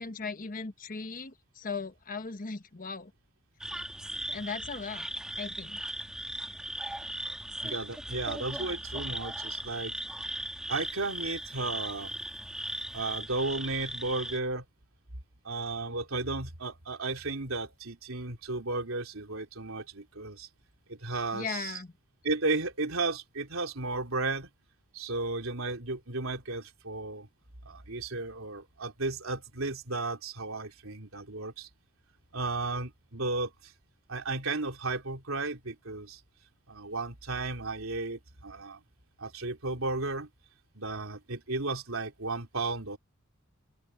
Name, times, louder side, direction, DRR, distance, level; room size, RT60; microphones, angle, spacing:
voice 1, 0.0-3.1 4.3-5.1 5.4-5.8 21.3-21.9, left 4 dB, 40° left, 1.2 m, -38 dB
sound 1, 3.6-14.4, right 1 dB, 5° right, 1.9 m, -38 dB
voice 2, 7.6-9.9 10.7-12.1 12.9-14.6 15.4-20.5 20.9-21.8 22.2-24.5 24.9-27.3 27.6-31.7 32.3-33.7 34.1-36.2 36.7-38.8 39.2-40.3 40.7-43.0, right 3 dB, 80° right, 3.3 m, -34 dB
open air
head